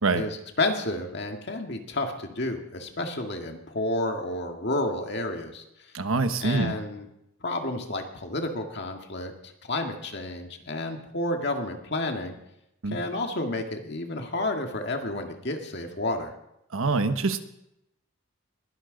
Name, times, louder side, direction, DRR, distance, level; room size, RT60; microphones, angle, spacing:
voice 1, 0.1-5.6 6.4-7.1 7.4-9.3 9.6-12.3 12.9-16.3, left 2 dB, 55° left, 4 dB, 1.9 m, -30 dB
voice 2, 5.9-6.8 12.8-13.0 16.7-17.4, right 3 dB, 80° right, 9 dB, 1.1 m, -25 dB
21.5 x 11.5 x 4.0 m, 0.82 s
head